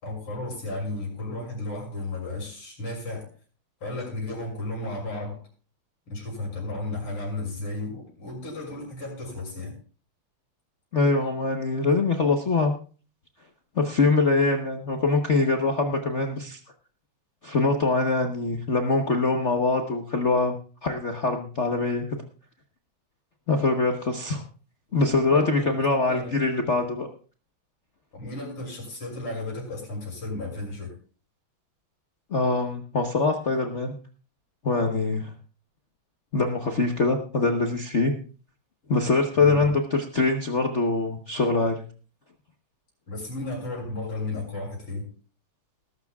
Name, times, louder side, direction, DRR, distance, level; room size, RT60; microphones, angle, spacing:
voice 1, 0.0-3.3 3.8-5.4 6.1-9.8 25.3-25.7 26.1-26.4 28.1-30.9 39.4-39.7 43.1-45.1, left 2 dB, 85° left, -1 dB, 7.5 m, -34 dB
voice 2, 10.9-12.7 13.8-16.6 17.4-20.6 20.8-22.2 23.5-24.4 24.9-27.1 32.3-34.0 34.6-35.3 36.3-38.1 38.9-41.8, left 3 dB, 40° left, 3 dB, 1.2 m, -23 dB
20.5 x 12.5 x 2.4 m, 0.38 s
omnidirectional pair, 2.3 m